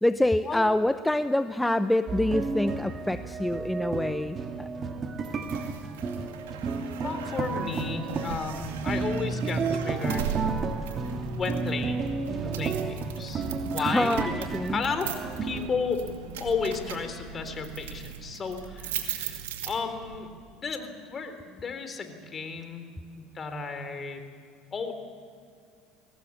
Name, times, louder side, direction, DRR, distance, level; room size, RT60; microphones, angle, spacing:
voice 1, 0.0-4.7 13.8-14.8, left 1 dB, 5° left, 11 dB, 0.7 m, -26 dB
sound 1, 2.1-15.7, right 4 dB, 40° right, 2.0 m, -32 dB
sound 2, 5.2-20.2, right 8 dB, 85° right, 2.3 m, -39 dB
voice 2, 7.0-10.4 11.1-12.1 12.4-13.5 13.7-15.1 15.4-16.1 16.4-22.9 23.2-24.2 24.7-24.9, left 5 dB, 35° left, 7 dB, 3.7 m, -33 dB
sound 3, 15.3-24.1, equal, 85° left, 3.6 m, -54 dB
22.0 x 18.5 x 8.6 m, 2.4 s
hypercardioid pair, 80°, 0 cm